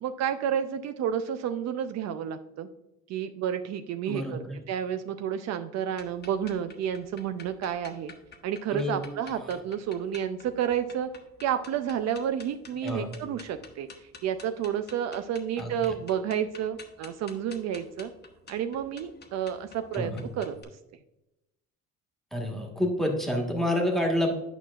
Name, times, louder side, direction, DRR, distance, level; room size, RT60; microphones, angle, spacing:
voice 1, 0.0-2.7 3.1-8.1 8.4-11.1 11.4-18.1 18.5-20.1 20.4-20.5, right 9 dB, 60° right, 9 dB, 0.5 m, -30 dB
voice 2, 4.1-4.6 8.7-9.0 9.4-9.5 12.8-13.1 15.6-16.0 19.9-20.2 22.3-24.3, left 1 dB, ahead, 1 dB, 1.4 m, -28 dB
sound 1, 5.9-20.6, left 5 dB, 35° left, 1.0 m, -50 dB
9.0 x 5.7 x 2.4 m, 0.94 s
cardioid pair, 120°, 30 cm